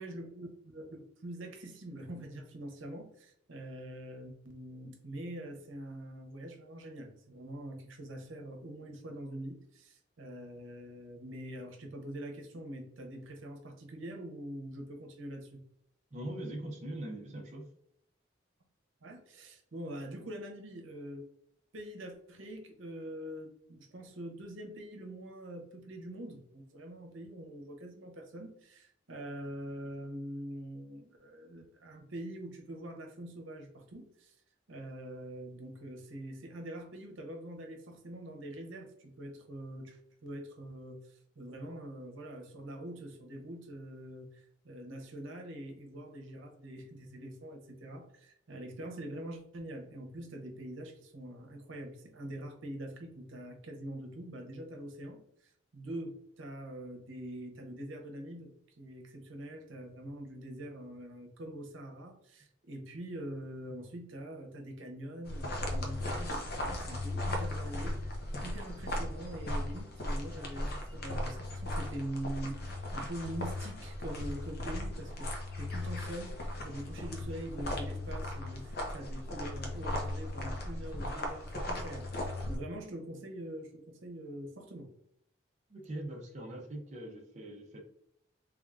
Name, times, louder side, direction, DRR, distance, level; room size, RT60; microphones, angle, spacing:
voice 1, 0.0-15.6 19.0-21.3 21.7-34.3 34.7-75.3 75.6-76.4 76.6-84.9, right 1 dB, 80° right, 3 dB, 0.8 m, -44 dB
voice 2, 16.1-17.7 85.7-87.8, right 1 dB, 35° right, 0 dB, 0.6 m, -41 dB
sound 1, 65.2-82.6, left 1 dB, 50° left, 0.8 m, -37 dB
3.5 x 3.4 x 2.4 m, 0.71 s
head